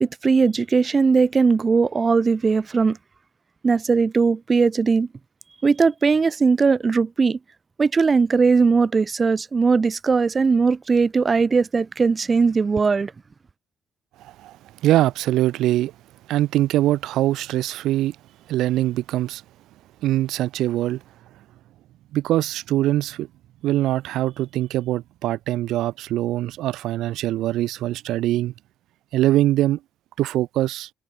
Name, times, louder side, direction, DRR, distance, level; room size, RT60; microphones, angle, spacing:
voice 1, 0.0-3.0 3.6-5.1 5.6-7.4 7.8-13.1, right 4 dB, 35° right, 1.2 m, -19 dB
voice 2, 14.2-14.6 14.8-15.9 16.3-18.2 18.5-19.4 20.0-21.0 22.1-23.3 23.6-28.5 29.1-29.8 30.2-30.9, right 14 dB, 85° right, 0.6 m, -22 dB
cardioid pair, 90°, 0 cm